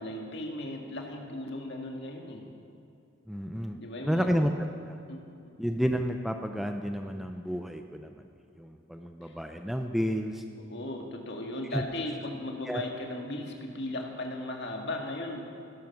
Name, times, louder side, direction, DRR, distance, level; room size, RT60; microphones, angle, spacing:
voice 1, 0.0-2.4 3.8-4.3 5.1-5.2 9.2-9.3 10.7-15.5, left 1 dB, 55° left, 1 dB, 1.9 m, -37 dB
voice 2, 3.3-3.8 4.0-5.0 5.6-8.3 8.6-10.4 11.7-11.8 12.7-12.8, equal, ahead, 5 dB, 0.5 m, -31 dB
17.0 x 13.0 x 5.9 m, 2.7 s
head